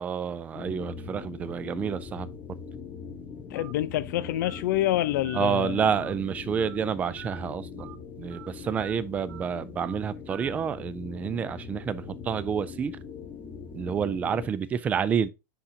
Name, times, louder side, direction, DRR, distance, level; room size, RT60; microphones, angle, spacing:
voice 1, 0.0-2.6 5.3-7.9 8.2-13.0 13.7-15.3, right 7 dB, 15° right, 0.3 m, -29 dB
sound 1, 0.5-14.5, left 5 dB, 25° left, 1.0 m, -41 dB
voice 2, 3.5-6.0, left 14 dB, 75° left, 0.6 m, -27 dB
Telephone, 3.6-3.7 4.4-4.6 5.2-5.4 5.9-6.1 6.6-6.8 7.2-7.4 7.8-8.0 8.3-8.5 8.8-8.9 9.3-9.5 9.8-10.0 10.3-10.5, right 10 dB, 85° right, 1.1 m, -45 dB
9.9 x 3.8 x 2.7 m
supercardioid pair, 170°, 10 cm